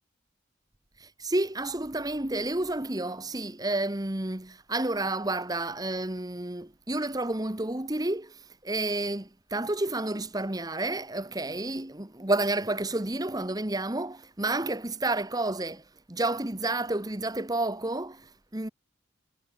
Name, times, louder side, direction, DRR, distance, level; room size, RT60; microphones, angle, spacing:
voice 1, 1.0-18.7, right 2 dB, 20° right, 1.3 m, -30 dB
head